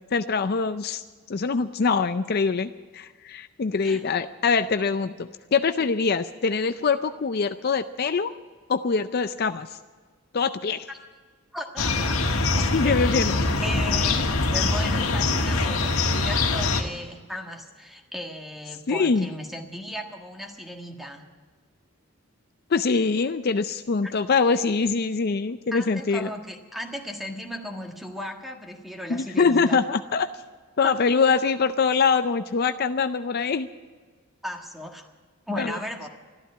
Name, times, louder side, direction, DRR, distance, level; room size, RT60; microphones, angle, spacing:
voice 1, 0.1-8.3 8.7-9.8 10.3-10.9 12.6-13.3 18.9-19.3 22.7-26.3 29.1-30.3 30.8-33.7 35.6-35.8, left 5 dB, 45° left, 10 dB, 0.5 m, -24 dB
voice 2, 11.5-13.0 13.6-21.3 24.0-24.1 25.7-29.8 30.8-31.0 34.4-35.1 35.5-36.1, left 1 dB, ahead, 3 dB, 1.5 m, -36 dB
sound 1, 11.8-16.8, left 3 dB, 80° left, 1.6 m, -23 dB
13.5 x 12.5 x 8.6 m, 1.5 s
head